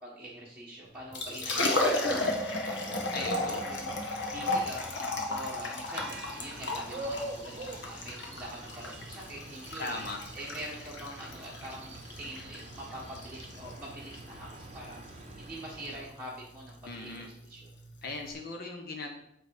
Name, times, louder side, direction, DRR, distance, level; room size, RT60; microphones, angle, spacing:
voice 1, 0.0-4.9 5.3-10.0 10.3-17.6, right 1 dB, 5° right, -7 dB, 1.5 m, -44 dB
Liquid, 0.9-18.3, left 2 dB, 80° left, 1.5 m, -35 dB
voice 2, 3.1-3.6 9.8-10.2 16.9-17.3 18.0-19.1, left 2 dB, 60° left, 2 dB, 1.1 m, -38 dB
Insect, 3.1-15.3, right 1 dB, 10° left, 3.0 m, -55 dB
sound 1, 5.9-16.0, right 2 dB, 40° right, 0.9 m, -45 dB
8.5 x 3.6 x 6.4 m, 0.75 s
head